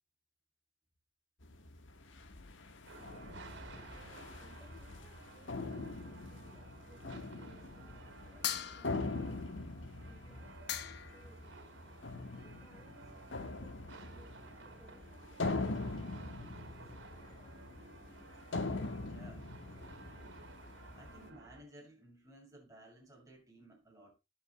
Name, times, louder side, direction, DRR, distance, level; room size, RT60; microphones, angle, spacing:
sound 1, 1.4-21.3, left 3 dB, 70° left, 1.4 m, -43 dB
voice 1, 2.7-11.7 12.3-17.7, left 1 dB, ahead, 4.1 m, -64 dB
sound 2, 2.9-21.6, right 3 dB, 65° right, 3.2 m, -55 dB
sound 3, 8.4-9.3 10.3-10.4 10.7-11.3, left 10 dB, 55° left, 1.0 m, -39 dB
voice 2, 19.0-19.5 20.0-20.5 20.9-24.1, right 1 dB, 15° right, 7.0 m, -57 dB
19.5 x 8.2 x 2.2 m
head